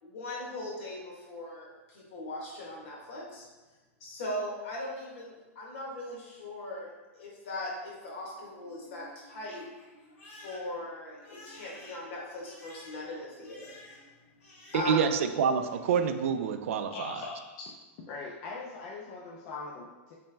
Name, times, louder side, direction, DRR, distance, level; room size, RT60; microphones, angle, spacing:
voice 1, 0.0-3.5 4.0-6.9 7.1-9.6 10.4-13.8 14.7-15.0, left 1 dB, 65° left, -3 dB, 1.3 m, -39 dB
Crying sobbing, 8.3-15.3 15.6-16.2, left 1 dB, 80° left, 1.4 m, -54 dB
voice 2, 14.7-17.2, right 6 dB, 75° right, 8 dB, 0.3 m, -27 dB
voice 3, 16.9-17.7 18.1-20.2, left 3 dB, 40° left, -2 dB, 0.4 m, -41 dB
3.3 x 3.1 x 3.3 m, 1.2 s
supercardioid pair, 165°, 7 cm